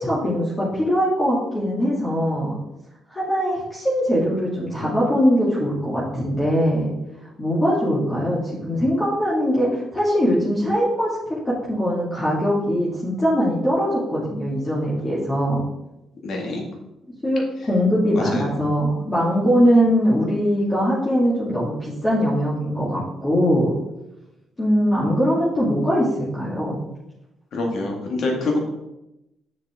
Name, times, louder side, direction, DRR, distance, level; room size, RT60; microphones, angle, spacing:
voice 1, 0.0-2.6 3.1-6.9 7.4-11.1 11.4-15.6 17.2-23.7 24.6-26.8, equal, 20° left, -7 dB, 2.2 m, -21 dB
voice 2, 16.2-16.6 18.1-18.4 27.5-28.6, left 2 dB, 65° left, 1 dB, 2.1 m, -25 dB
7.0 x 6.5 x 3.7 m, 0.92 s
cardioid pair, 90°, 0 cm